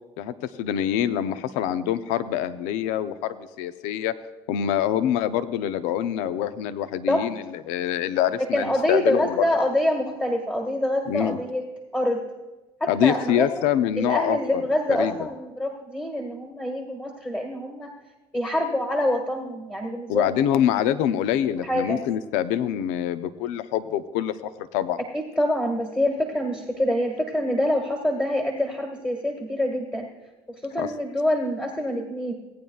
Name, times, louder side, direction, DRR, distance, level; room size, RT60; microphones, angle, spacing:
voice 1, 0.2-4.1 4.5-9.5 11.1-11.4 12.9-14.6 14.9-15.1 20.1-25.0 30.8-30.9, left 10 dB, 75° left, 12 dB, 0.6 m, -25 dB
voice 2, 8.4-11.6 11.9-12.2 12.8-13.7 14.0-17.9 18.3-20.5 21.5-22.0 25.1-30.1 30.6-32.3, left 1 dB, 10° left, 2 dB, 1.7 m, -26 dB
17.5 x 9.3 x 2.4 m, 1.1 s
hypercardioid pair, 60°, 13 cm